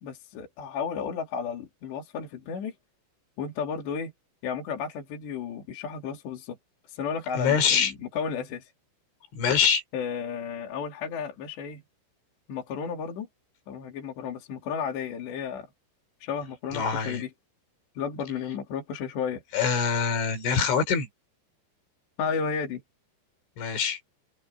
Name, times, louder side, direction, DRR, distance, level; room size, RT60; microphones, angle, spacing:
voice 1, 0.0-2.7 3.4-4.1 4.4-6.6 6.9-8.7 9.9-11.8 12.5-13.3 13.7-15.7 16.2-17.3 18.0-19.4 22.2-22.8, left 6 dB, 70° left, 5.2 m, -33 dB
voice 2, 7.4-7.9 9.4-9.8 16.7-17.2 19.5-21.1 23.6-24.0, left 6 dB, 90° left, 7.1 m, -24 dB
omnidirectional pair, 5.2 m